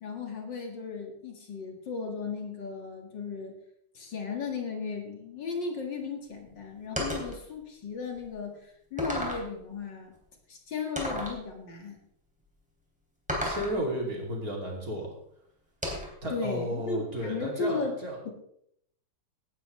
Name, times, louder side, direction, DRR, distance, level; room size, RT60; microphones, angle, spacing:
voice 1, 0.0-3.5 3.9-10.1 10.5-12.0 16.3-18.0 18.2-18.3, left 4 dB, 60° left, 2 dB, 2.6 m, -35 dB
sound 1, 7.0-7.4 8.2-8.3 9.0-9.5 11.0-11.4 13.3-13.8 15.8-16.2, equal, 5° right, 3.2 m, -32 dB
voice 2, 13.4-15.1 16.2-18.3, equal, 45° right, -1 dB, 3.3 m, -33 dB
17.0 x 11.5 x 3.3 m, 0.72 s
omnidirectional pair, 2.3 m